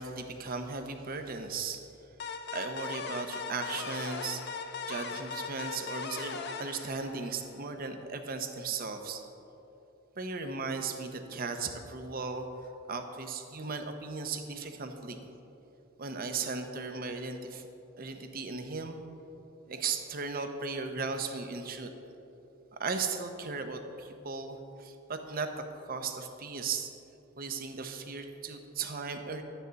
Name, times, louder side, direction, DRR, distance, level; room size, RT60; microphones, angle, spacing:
voice 1, 0.0-1.8 2.5-4.4 4.9-9.2 10.2-12.5 12.9-15.2 16.0-17.7 18.0-19.0 19.7-21.9 22.7-25.5 25.9-26.9 27.4-29.4, right 4 dB, 45° right, 6 dB, 0.8 m, -36 dB
sound 1, 2.2-7.6, left 5 dB, 50° left, 0.6 m, -39 dB
12.0 x 9.1 x 4.0 m, 2.9 s
head